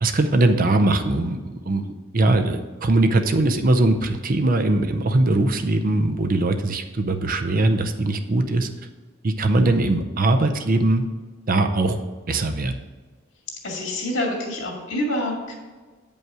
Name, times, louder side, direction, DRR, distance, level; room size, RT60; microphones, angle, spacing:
voice 1, 0.0-1.4 1.7-1.8 2.1-8.7 9.2-11.0 11.5-12.0 12.3-12.7, right 2 dB, 45° right, 7 dB, 0.6 m, -20 dB
voice 2, 13.6-15.5, left 1 dB, 70° left, 0 dB, 2.2 m, -27 dB
9.0 x 5.4 x 4.8 m, 1.4 s
head